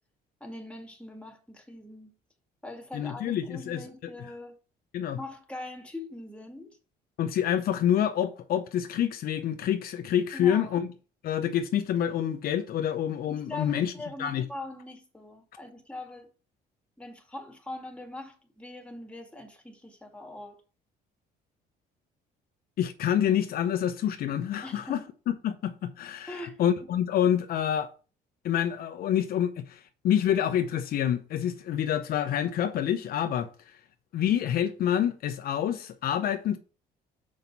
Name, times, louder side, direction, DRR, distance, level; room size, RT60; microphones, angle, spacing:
voice 1, 0.4-2.1 2.6-4.5 5.2-6.8 10.3-10.7 13.3-16.3 17.0-20.6 24.6-25.0 26.3-26.6, left 2 dB, 5° left, 2.2 m, -42 dB
voice 2, 2.9-3.8 4.9-5.2 7.2-10.9 11.2-13.9 14.2-14.5 22.8-27.9 28.4-33.5 34.1-36.6, left 10 dB, 60° left, 0.8 m, -27 dB
6.4 x 5.3 x 6.0 m
cardioid pair, 110°, 17 cm